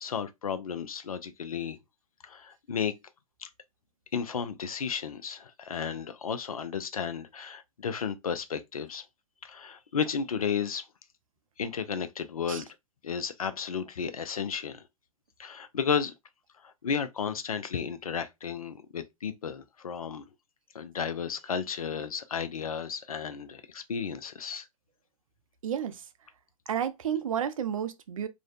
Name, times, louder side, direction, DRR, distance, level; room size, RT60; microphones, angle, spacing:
voice 1, 0.0-1.8 2.2-2.9 3.4-3.5 4.1-9.0 9.4-10.8 11.6-12.7 13.0-14.8 15.4-16.1 16.6-20.2 20.7-24.7, left 6 dB, 85° left, 0.4 m, -33 dB
voice 2, 25.6-26.1 26.7-28.3, right 9 dB, 75° right, 0.4 m, -31 dB
2.5 x 2.1 x 2.4 m
figure-of-eight pair, 105°, 18 cm